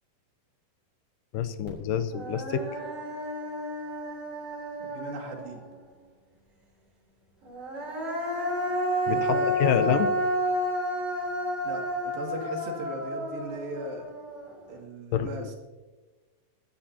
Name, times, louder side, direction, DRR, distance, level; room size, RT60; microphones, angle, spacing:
voice 1, 1.3-2.6 9.1-10.1 15.1-15.5, left 9 dB, 80° left, 10 dB, 2.3 m, -27 dB
Human voice, 1.7-1.8 2.1-5.8 7.4-14.7, equal, 45° right, 4.5 m, -31 dB
voice 2, 4.8-5.6 9.1-9.9 11.6-14.1 14.7-15.6, right 2 dB, 85° right, 0 dB, 4.2 m, -37 dB
24.5 x 11.5 x 2.8 m, 1.2 s
omnidirectional pair, 4.0 m